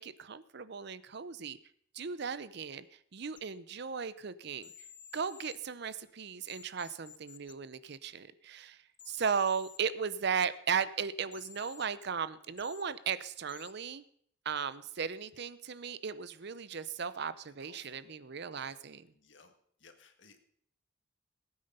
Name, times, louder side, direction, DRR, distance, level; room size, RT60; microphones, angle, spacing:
voice 1, 0.0-1.6 1.9-2.8 3.1-4.7 5.1-8.8 9.1-14.0 14.5-19.0, right 6 dB, 55° right, 15 dB, 0.6 m, -36 dB
sound 1, 3.4-3.5 4.6-5.6 6.5-7.5 8.9-9.8 11.3-11.9 12.6-12.8 13.5-13.7, left 8 dB, 25° left, 0.6 m, -52 dB
voice 2, 17.4-18.0 18.5-18.7 19.1-19.5 19.8-20.4, left 4 dB, 65° left, 6 dB, 1.8 m, -60 dB
19.0 x 8.8 x 5.5 m, 0.66 s
head